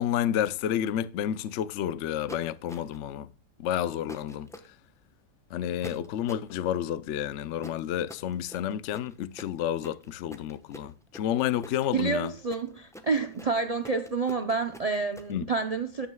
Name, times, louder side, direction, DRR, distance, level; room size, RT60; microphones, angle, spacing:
voice 1, 0.0-3.3 3.6-4.5 5.5-12.3 15.3-15.5, left 10 dB, 65° left, 0.7 m, -30 dB
sound 1, 2.3-3.1 4.1-4.7 5.8-6.5 7.6-15.3, equal, 5° left, 0.7 m, -45 dB
voice 2, 11.9-16.1, right 4 dB, 70° right, 0.3 m, -29 dB
13.5 x 9.4 x 2.2 m
omnidirectional pair, 1.7 m